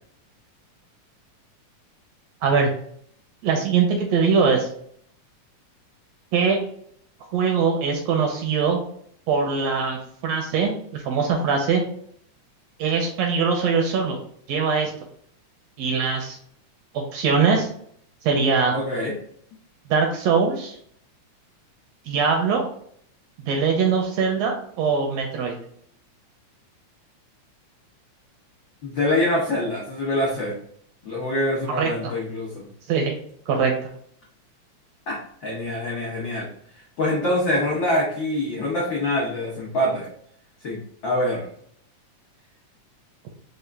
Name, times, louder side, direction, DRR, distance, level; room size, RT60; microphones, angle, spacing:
voice 1, 2.4-2.7 3.4-4.7 6.3-6.6 7.3-8.8 9.3-11.8 12.8-14.2 14.5-14.9 15.8-16.4 16.9-17.7 18.2-18.7 19.9-20.8 22.1-22.7 23.5-25.5 31.7-32.1 32.9-33.2 33.5-33.7, right 5 dB, 75° right, 2 dB, 1.6 m, -22 dB
voice 2, 18.7-19.2 28.8-30.6 31.0-32.7 35.1-36.5 37.0-40.1 40.6-41.5, left 1 dB, 90° left, -4 dB, 1.0 m, -25 dB
4.8 x 2.4 x 3.3 m, 0.64 s
omnidirectional pair, 3.5 m